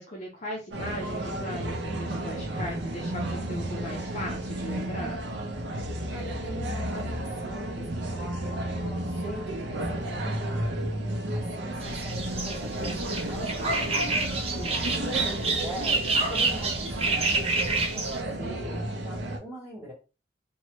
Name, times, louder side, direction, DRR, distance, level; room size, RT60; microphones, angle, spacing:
voice 1, 0.0-5.2 14.5-15.1, left 1 dB, 40° left, -2 dB, 0.6 m, -38 dB
sound 1, 0.7-19.4, right 1 dB, 80° right, 0.6 m, -32 dB
voice 2, 6.1-10.7 11.3-14.2 14.8-19.9, equal, 15° right, -9 dB, 1.6 m, -43 dB
sound 2, 11.8-18.2, right 3 dB, 35° right, 0.7 m, -28 dB
3.1 x 2.2 x 3.0 m, 0.32 s
head